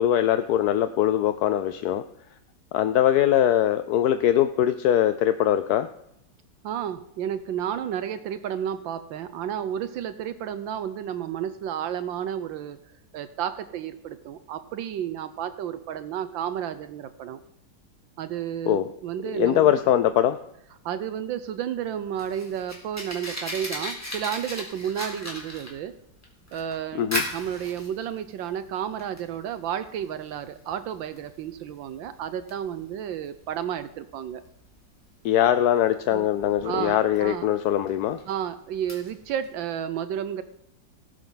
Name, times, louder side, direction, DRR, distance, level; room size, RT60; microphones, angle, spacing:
voice 1, 0.0-2.0 2.7-5.9 18.7-18.9 19.4-20.4 26.9-27.2 35.2-38.2, left 11 dB, 70° left, 10 dB, 1.0 m, -22 dB
voice 2, 6.6-12.8 13.1-17.4 18.2-19.7 20.8-25.9 26.5-34.4 36.1-36.3 36.6-37.5 38.3-40.4, right 9 dB, 80° right, 12 dB, 1.5 m, -32 dB
Fire, 21.8-39.5, left 1 dB, 10° left, 3.8 m, -38 dB
19.0 x 11.5 x 3.9 m, 0.78 s
omnidirectional pair, 2.0 m